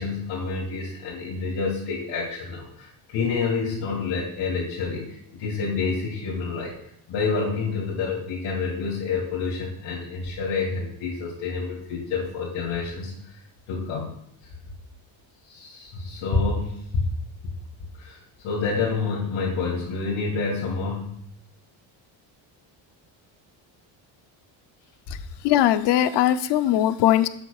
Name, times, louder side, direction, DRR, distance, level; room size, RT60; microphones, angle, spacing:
voice 1, 0.0-6.7 7.1-13.4 13.7-14.1 15.4-17.0 17.9-21.1, left 4 dB, 90° left, -7 dB, 2.8 m, -28 dB
voice 2, 25.4-27.3, left 12 dB, 60° left, 12 dB, 0.6 m, -20 dB
12.0 x 8.2 x 2.4 m, 0.72 s
cardioid pair, 155°, 47 cm